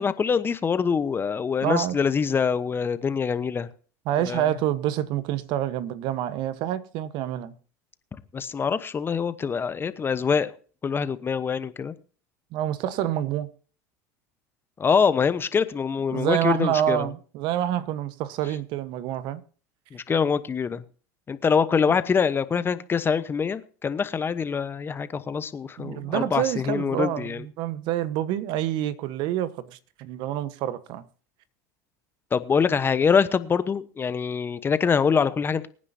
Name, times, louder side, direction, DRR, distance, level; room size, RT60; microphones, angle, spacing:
voice 1, 0.0-3.7 4.2-4.5 8.3-10.5 10.8-11.9 14.8-17.1 19.9-20.8 21.3-27.4 32.3-35.7, left 6 dB, 25° left, 1.1 m, -24 dB
voice 2, 1.6-2.0 4.1-7.5 12.5-13.5 16.1-19.4 25.8-31.0, right 12 dB, 60° right, 1.2 m, -27 dB
24.0 x 9.8 x 2.8 m
hypercardioid pair, 95°, 9 cm